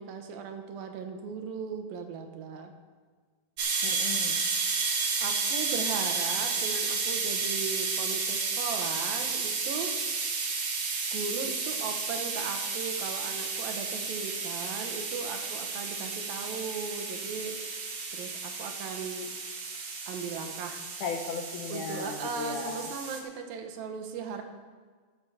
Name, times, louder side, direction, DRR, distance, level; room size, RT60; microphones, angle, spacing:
voice 1, 0.0-2.7 5.2-9.9 11.1-17.6 18.1-19.3 20.1-20.9 21.7-24.4, right 5 dB, 80° right, 5 dB, 2.8 m, -37 dB
sound 1, 3.6-23.2, right 4 dB, 60° right, 1.3 m, -32 dB
voice 2, 3.8-4.4 21.0-22.9, left 5 dB, 70° left, 3 dB, 2.2 m, -36 dB
12.5 x 6.8 x 7.1 m, 1.5 s
omnidirectional pair, 4.2 m